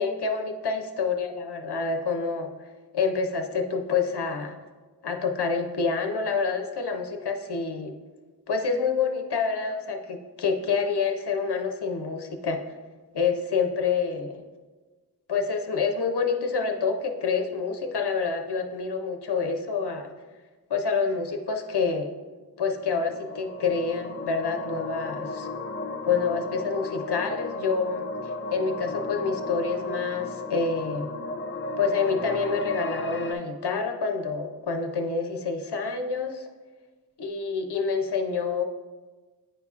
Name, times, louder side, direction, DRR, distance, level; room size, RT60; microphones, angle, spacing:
voice 1, 0.0-2.5 2.9-4.6 5.0-7.9 8.5-12.6 13.1-14.4 15.3-20.1 20.7-22.1 22.6-25.5 26.1-31.1 31.8-36.5 37.2-38.6, left 5 dB, 80° left, 5 dB, 0.6 m, -27 dB
sound 1, 22.6-33.3, left 2 dB, 30° left, 0.5 m, -35 dB
8.7 x 5.4 x 2.4 m, 1.3 s
wide cardioid pair, 45°, 39 cm